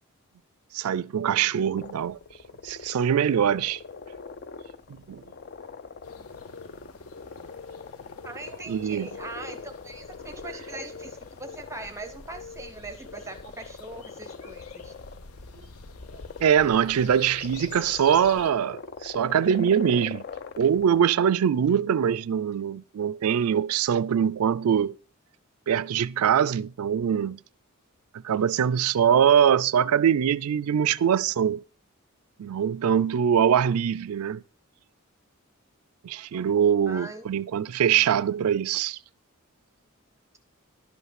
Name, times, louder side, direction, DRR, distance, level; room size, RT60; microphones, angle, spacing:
voice 1, 0.7-2.2 2.6-3.8 4.9-5.2 8.7-9.1 16.4-20.2 20.6-24.9 25.7-27.4 28.2-31.6 32.4-34.4 36.0-39.0, right 8 dB, 90° right, 0.4 m, -23 dB
sound 1, 1.8-21.0, left 5 dB, 45° left, 0.5 m, -43 dB
sound 2, 6.0-18.5, left 5 dB, 90° left, 0.9 m, -46 dB
voice 2, 8.2-14.9 36.9-37.2, right 2 dB, 15° right, 0.7 m, -41 dB
11.5 x 5.6 x 5.8 m
head